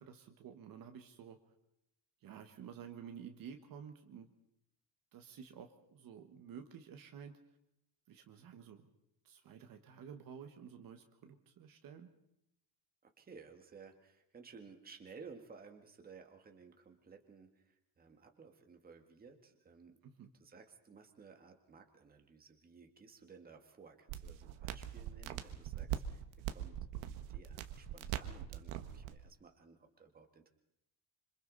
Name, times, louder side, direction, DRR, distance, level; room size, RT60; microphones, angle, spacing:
voice 1, 0.0-1.4 2.2-4.3 5.1-7.3 8.1-8.9 9.2-12.1 20.0-20.3, right 7 dB, 45° right, 5 dB, 1.5 m, -52 dB
voice 2, 13.0-20.0 20.4-26.8 27.0-30.5, right 5 dB, 20° right, 4 dB, 1.8 m, -57 dB
sound 1, 24.1-29.2, right 11 dB, 75° right, 1.5 m, -42 dB
26.5 x 26.0 x 4.1 m, 0.81 s
cardioid pair, 170°, 48 cm